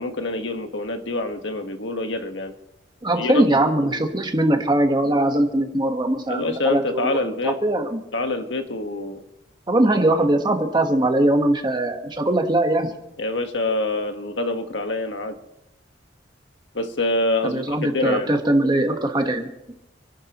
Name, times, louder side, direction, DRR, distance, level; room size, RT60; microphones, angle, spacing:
voice 1, 0.0-2.5 3.2-3.4 6.3-7.5 8.1-9.2 13.2-15.3 16.7-18.3, left 2 dB, 75° left, 6 dB, 1.5 m, -26 dB
voice 2, 3.0-8.0 9.7-12.9 17.4-19.5, right 1 dB, 25° right, 5 dB, 1.4 m, -21 dB
28.5 x 11.5 x 3.1 m, 0.87 s
head